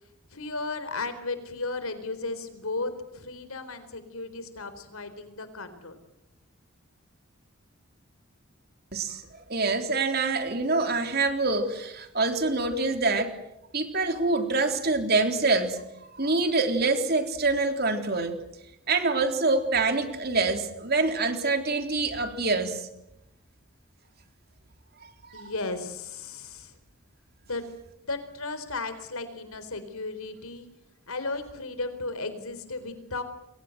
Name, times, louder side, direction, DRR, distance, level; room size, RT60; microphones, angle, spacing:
voice 1, 0.3-5.9 25.3-26.7 27.5-27.6 28.0-30.7 31.1-33.2, left 3 dB, 85° left, 11 dB, 4.2 m, -35 dB
voice 2, 9.5-13.3 13.7-15.8 16.2-18.3 18.9-22.9 25.3-25.5, right 3 dB, 45° right, 6 dB, 3.7 m, -25 dB
29.0 x 23.0 x 7.9 m, 0.85 s
head